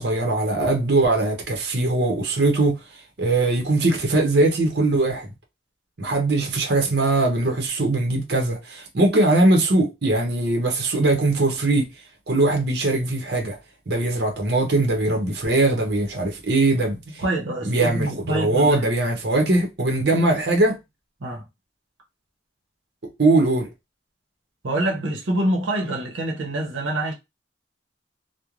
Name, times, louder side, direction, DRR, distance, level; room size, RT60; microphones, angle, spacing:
voice 1, 0.0-2.8 3.2-5.3 6.0-11.9 12.3-13.6 13.9-17.2 17.6-20.8 23.2-23.7, right 2 dB, 60° right, 0.8 m, -21 dB
voice 2, 17.2-18.8 21.2-21.4 24.6-27.1, right 1 dB, 85° right, 0.8 m, -26 dB
3.0 x 2.1 x 2.4 m
head